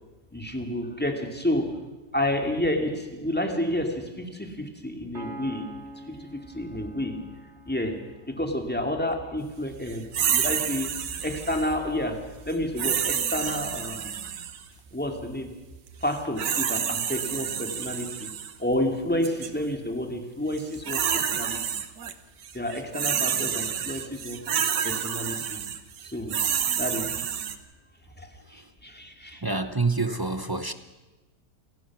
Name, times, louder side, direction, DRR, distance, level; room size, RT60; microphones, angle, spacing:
voice 1, 0.3-1.9 2.1-5.8 6.1-7.2 7.7-14.2 14.9-15.5 16.0-18.3 18.6-21.6 22.5-24.5 24.8-25.6 26.0-26.4 26.8-27.5 28.2-29.4, left 1 dB, 5° left, 4 dB, 2.3 m, -30 dB
Piano, 5.1-8.7, right 1 dB, 40° right, 3.4 m, -44 dB
sound 1, 10.1-11.7 12.8-14.6 16.1-18.5 19.2-19.5 20.5-22.1 22.4-27.6, right 8 dB, 80° right, 1.8 m, -29 dB
voice 2, 29.4-30.7, right 3 dB, 20° right, 10 dB, 0.6 m, -27 dB
28.0 x 17.5 x 6.1 m, 1.1 s
omnidirectional pair, 1.8 m